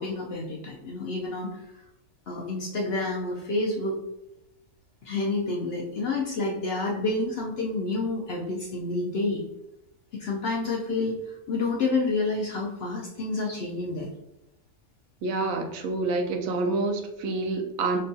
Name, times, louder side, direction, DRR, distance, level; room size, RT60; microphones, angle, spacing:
voice 1, 0.0-1.5 2.3-4.0 5.0-9.4 10.2-11.1 11.5-14.1, left 3 dB, 65° left, -2 dB, 0.7 m, -29 dB
voice 2, 15.2-18.0, right 3 dB, 75° right, 4 dB, 1.0 m, -27 dB
5.2 x 2.2 x 2.6 m, 0.89 s
omnidirectional pair, 1.5 m